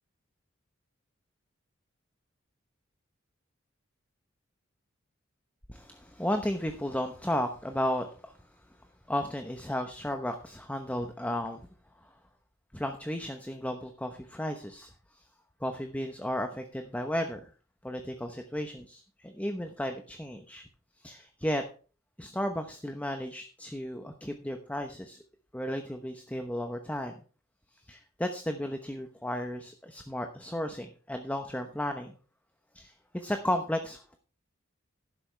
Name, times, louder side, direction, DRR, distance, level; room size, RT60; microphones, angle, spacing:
voice 1, 5.7-8.3 9.1-11.6 12.0-12.1 12.7-15.2 15.6-17.5 17.8-20.7 21.0-21.6 22.2-25.2 25.5-27.1 27.9-32.2 32.7-34.2, left 1 dB, 5° left, 6 dB, 0.9 m, -34 dB
12.0 x 10.5 x 3.3 m, 0.38 s
head